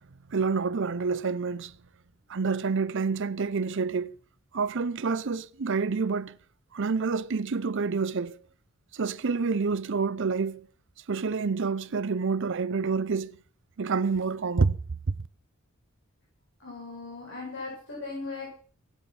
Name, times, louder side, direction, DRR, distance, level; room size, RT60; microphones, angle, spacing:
voice 1, 0.3-1.7 2.3-4.2 4.5-6.4 6.7-8.4 8.9-10.7 11.1-13.4 13.8-14.8 15.1-15.2, right 4 dB, 60° right, 0.6 m, -28 dB
voice 2, 16.6-18.5, left 3 dB, 60° left, 7.3 m, -38 dB
17.5 x 11.5 x 6.0 m
head